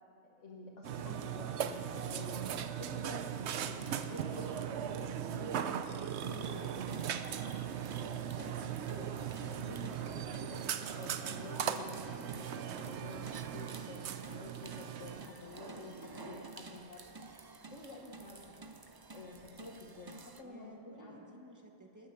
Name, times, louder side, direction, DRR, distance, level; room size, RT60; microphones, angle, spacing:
voice 1, 0.2-17.1 17.7-21.1, left 2 dB, 85° left, -3 dB, 1.7 m, -50 dB
Burping eructation, 0.8-15.3, right 9 dB, 70° right, 0.9 m, -38 dB
sound 1, 6.1-20.4, right 3 dB, 40° right, 0.3 m, -51 dB
voice 2, 20.4-22.1, equal, 15° right, 2 dB, 1.3 m, -56 dB
20.0 x 8.9 x 6.7 m, 2.7 s
omnidirectional pair, 1.2 m